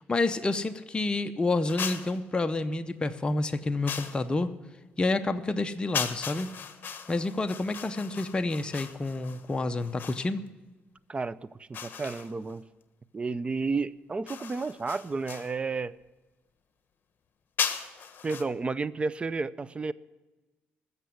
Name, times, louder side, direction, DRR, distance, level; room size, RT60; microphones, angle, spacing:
voice 1, 0.0-4.5 5.0-6.5 7.1-10.5, left 2 dB, 20° left, 0.8 m, -29 dB
sound 1, 1.7-2.2 3.8-4.3 5.9-10.3 11.7-12.6 14.3-15.5 17.6-18.4, left 7 dB, 50° left, 1.3 m, -37 dB
voice 2, 11.1-12.6 13.1-16.0 18.2-19.9, right 4 dB, 25° right, 0.5 m, -32 dB
14.5 x 6.8 x 9.5 m
cardioid pair, 90°, 4 cm